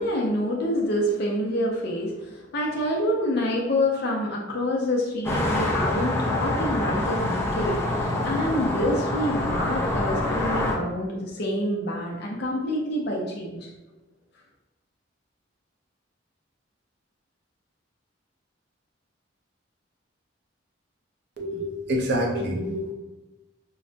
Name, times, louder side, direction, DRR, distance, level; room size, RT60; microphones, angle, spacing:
voice 1, 0.0-13.7, left 1 dB, 55° left, -3 dB, 0.6 m, -27 dB
sound 1, 5.2-10.7, left 1 dB, 10° left, 0.5 m, -26 dB
voice 2, 21.4-22.9, equal, 60° right, 1 dB, 0.7 m, -27 dB
4.7 x 2.1 x 2.6 m, 1.1 s
head